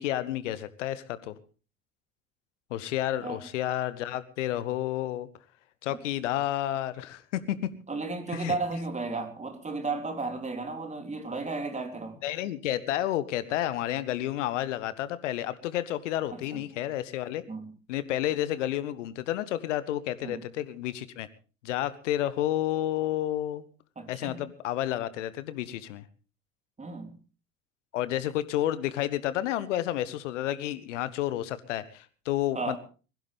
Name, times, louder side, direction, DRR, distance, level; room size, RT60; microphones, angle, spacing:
voice 1, 0.0-1.3 2.7-5.3 5.8-7.7 8.3-8.6 12.2-17.4 17.9-21.3 21.6-23.6 24.1-26.0 27.9-32.8, left 13 dB, 65° left, 16 dB, 1.4 m, -30 dB
voice 2, 7.9-12.2 16.3-16.6 17.5-17.7 20.2-20.4 24.0-24.4 26.8-27.2 32.5-32.8, right 3 dB, 15° right, 6 dB, 3.3 m, -34 dB
21.5 x 16.0 x 3.5 m, 0.36 s
figure-of-eight pair, 65°, 39 cm